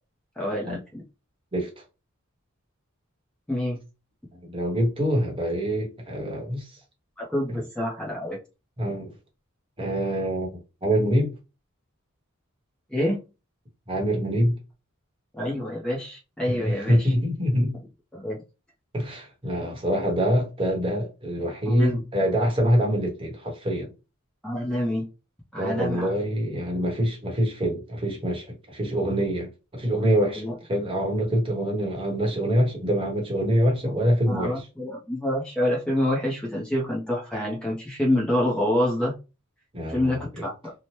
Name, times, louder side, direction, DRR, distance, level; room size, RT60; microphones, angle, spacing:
voice 1, 0.4-1.0 3.5-3.8 7.2-8.4 12.9-13.2 15.3-17.1 18.1-18.4 21.7-22.0 24.4-25.1 25.5-26.1 30.4-30.5 34.3-39.1 39.9-40.5, left 1 dB, 5° left, 0.6 m, -27 dB
voice 2, 4.4-6.7 7.5-7.6 8.8-9.1 9.8-10.5 10.8-11.3 13.9-14.6 16.5-17.8 18.9-23.9 25.6-34.7 39.7-40.5, equal, 25° right, 0.9 m, -25 dB
2.8 x 2.1 x 3.0 m
head